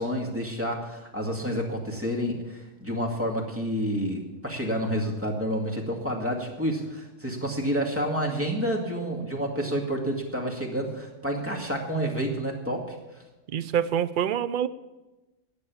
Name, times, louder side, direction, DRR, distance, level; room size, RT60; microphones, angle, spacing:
voice 1, 0.0-13.0, equal, 10° right, 0 dB, 2.0 m, -29 dB
voice 2, 13.5-14.7, right 9 dB, 55° right, 14 dB, 0.6 m, -26 dB
13.0 x 8.4 x 7.1 m, 1.1 s
omnidirectional pair, 1.3 m